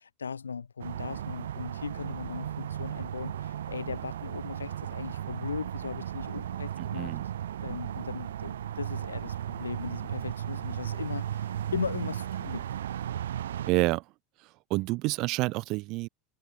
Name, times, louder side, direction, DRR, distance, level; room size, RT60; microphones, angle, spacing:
voice 1, 0.0-7.2 7.6-12.7, left 6 dB, 85° left, 2.6 m, -38 dB
sound 1, 0.8-13.7, right 10 dB, 75° right, 1.1 m, -35 dB
voice 2, 13.7-14.0 14.7-16.1, right 22 dB, 50° right, 0.5 m, -28 dB
figure-of-eight pair, 80°, 0 cm